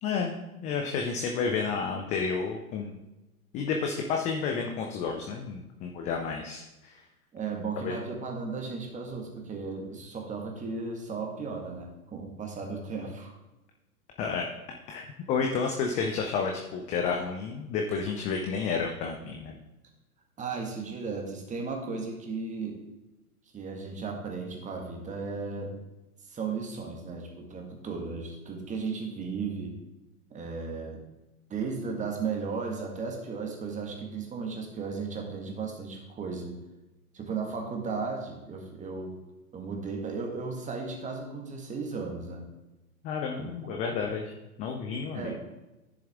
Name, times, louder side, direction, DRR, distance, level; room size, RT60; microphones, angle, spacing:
voice 1, 0.0-3.0 3.5-7.0 7.8-7.9 14.2-14.5 14.9-19.5 43.0-44.3 44.6-45.3, left 5 dB, 15° left, 2 dB, 0.4 m, -31 dB
voice 2, 7.3-13.3 20.4-22.8 23.5-25.7 26.2-29.7 30.3-31.0 31.5-36.5 37.1-39.1 39.5-42.4 43.4-43.8 45.1-45.4, right 4 dB, 15° right, 2 dB, 1.6 m, -35 dB
10.0 x 7.0 x 3.5 m, 1.0 s
figure-of-eight pair, 105°, 45 cm